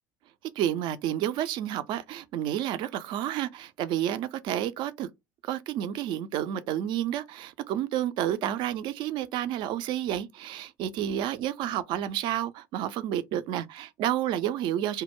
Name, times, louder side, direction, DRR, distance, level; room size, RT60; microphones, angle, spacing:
voice 1, 0.6-5.1 5.4-15.0, right 11 dB, 45° right, 0.3 m, -30 dB
2.2 x 2.0 x 2.9 m
figure-of-eight pair, 65°, 11 cm